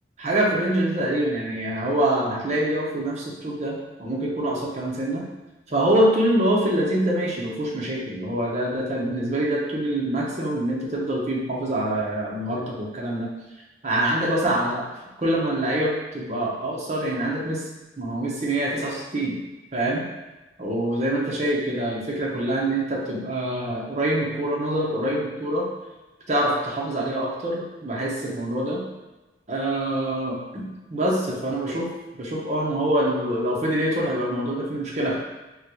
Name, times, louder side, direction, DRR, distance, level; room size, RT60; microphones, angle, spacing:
voice 1, 0.2-5.2 5.7-13.3 13.8-14.9 15.2-17.6 18.0-19.4 19.7-20.0 20.6-25.7 26.3-28.8 29.5-31.9 32.2-35.2, right 1 dB, 40° right, -4 dB, 0.7 m, -25 dB
3.7 x 2.2 x 2.9 m, 1.1 s
head